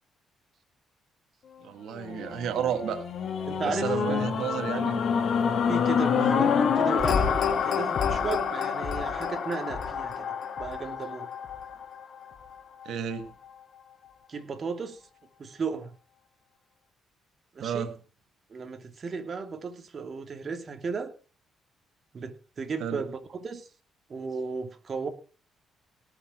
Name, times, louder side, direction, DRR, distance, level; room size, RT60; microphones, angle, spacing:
voice 1, 1.6-3.0 3.6-5.2 6.1-6.3 12.9-13.3 17.6-17.9 22.8-23.0, right 8 dB, 75° right, 7 dB, 2.1 m, -32 dB
sound 1, 1.9-12.2 12.8-12.9, left 7 dB, 60° left, 2.8 m, -27 dB
voice 2, 3.5-4.8 5.7-10.3 10.6-11.3 14.3-15.0 15.4-15.9 17.5-17.9 18.5-21.1 22.1-23.7 24.1-25.1, right 5 dB, 40° right, 6 dB, 3.0 m, -35 dB
18.0 x 7.1 x 6.1 m, 0.37 s
cardioid pair, 90°, 0 cm